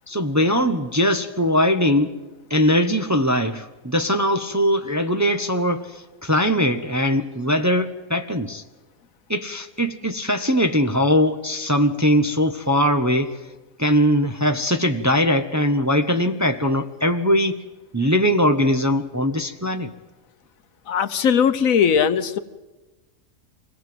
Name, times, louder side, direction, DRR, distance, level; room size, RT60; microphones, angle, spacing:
voice 1, 0.1-2.2 2.5-8.6 9.3-13.4 13.8-17.6 17.9-19.9, equal, 15° right, 6 dB, 0.8 m, -21 dB
voice 2, 20.9-22.4, left 7 dB, 75° left, 12 dB, 1.4 m, -19 dB
25.5 x 18.5 x 7.8 m, 1.2 s
omnidirectional pair, 1.4 m